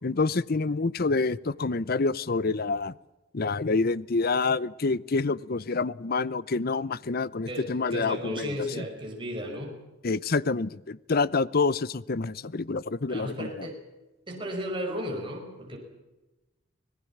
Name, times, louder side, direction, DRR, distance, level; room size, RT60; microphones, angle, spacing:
voice 1, 0.0-2.9 3.3-8.5 8.8-8.9 10.0-13.7, left 3 dB, 50° left, 20 dB, 0.7 m, -27 dB
voice 2, 7.5-9.8 13.1-13.8 14.3-15.8, equal, 25° right, 0 dB, 5.5 m, -34 dB
25.5 x 18.5 x 7.3 m, 1.1 s
head